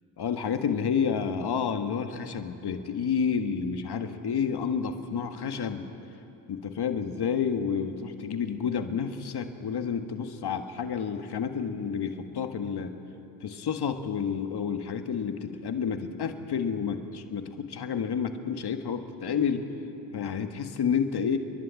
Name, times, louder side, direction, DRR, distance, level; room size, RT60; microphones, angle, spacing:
voice 1, 0.2-5.9 6.5-12.9 13.4-19.7 20.1-21.4, left 6 dB, 60° left, 7 dB, 1.7 m, -30 dB
29.0 x 11.5 x 8.9 m, 2.9 s
supercardioid pair, 50°, 45 cm